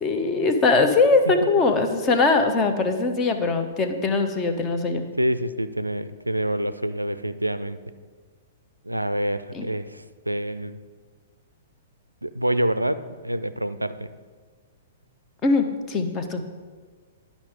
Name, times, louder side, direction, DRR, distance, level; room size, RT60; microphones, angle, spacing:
voice 1, 0.0-5.0 9.5-9.7 15.4-16.4, left 3 dB, 25° left, 6 dB, 0.9 m, -21 dB
voice 2, 5.2-7.8 8.9-10.8 12.2-14.1, right 1 dB, 85° right, 13 dB, 0.3 m, -27 dB
11.0 x 5.3 x 4.9 m, 1.6 s
figure-of-eight pair, 110°, 0 cm